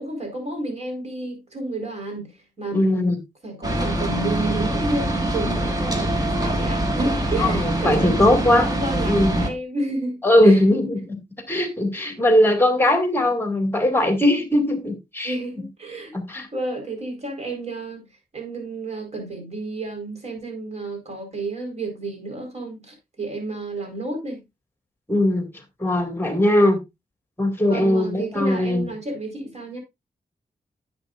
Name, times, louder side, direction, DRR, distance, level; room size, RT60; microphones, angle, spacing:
voice 1, 0.0-2.3 2.6-3.1 3.4-10.6 15.2-16.1 16.5-18.0 18.3-24.4 27.7-29.8, right 2 dB, 45° right, 4.4 m, -31 dB
voice 2, 2.7-3.2 7.4-8.7 9.1-9.5 10.2-11.2 11.5-15.3 16.1-16.5 25.1-25.5 25.8-26.8 27.4-28.9, left 1 dB, 15° left, 2.2 m, -19 dB
sound 1, 3.6-9.5, right 1 dB, 25° right, 1.9 m, -24 dB
10.5 x 8.2 x 2.5 m
wide cardioid pair, 110°, 16 cm